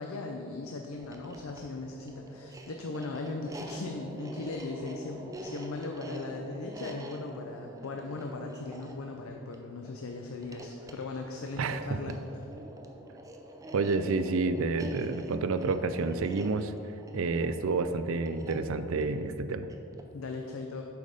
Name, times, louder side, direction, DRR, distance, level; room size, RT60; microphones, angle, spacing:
voice 1, 0.0-12.2 20.1-20.9, left 3 dB, 75° left, 3 dB, 0.5 m, -38 dB
sound 1, 1.0-20.2, right 1 dB, 15° right, 0.5 m, -46 dB
voice 2, 11.6-12.0 13.7-16.7 17.1-19.7, right 3 dB, 70° right, 11 dB, 0.4 m, -29 dB
7.7 x 5.4 x 5.1 m, 2.9 s
head